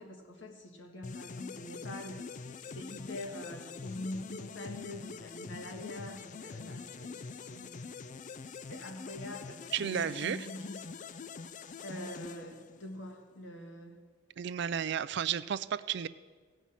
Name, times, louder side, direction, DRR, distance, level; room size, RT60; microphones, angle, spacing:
voice 1, 0.0-2.2 2.6-7.9 8.7-10.8 11.8-14.0, left 1 dB, 80° left, 3 dB, 1.6 m, -44 dB
sound 1, 1.0-13.1, left 5 dB, 40° left, 0.4 m, -45 dB
voice 2, 9.7-10.5 14.4-16.1, right 8 dB, 65° right, 17 dB, 0.4 m, -33 dB
16.5 x 5.6 x 7.4 m, 1.5 s
head